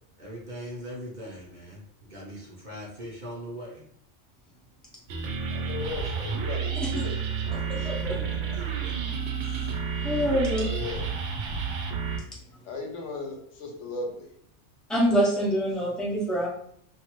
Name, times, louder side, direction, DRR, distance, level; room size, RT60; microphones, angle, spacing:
voice 1, 0.2-1.8 2.1-3.8 7.5-8.9, equal, 45° right, -4 dB, 0.8 m, -41 dB
sound 1, 5.1-12.2, right 6 dB, 75° right, 0.9 m, -30 dB
voice 2, 5.5-7.2 10.4-11.1 12.6-14.3, left 3 dB, 75° left, 2 dB, 1.0 m, -36 dB
voice 3, 7.7-8.2 9.4-9.7 10.0-10.6 14.9-16.5, equal, ahead, -5 dB, 0.6 m, -26 dB
2.6 x 2.5 x 2.9 m, 0.66 s
omnidirectional pair, 1.3 m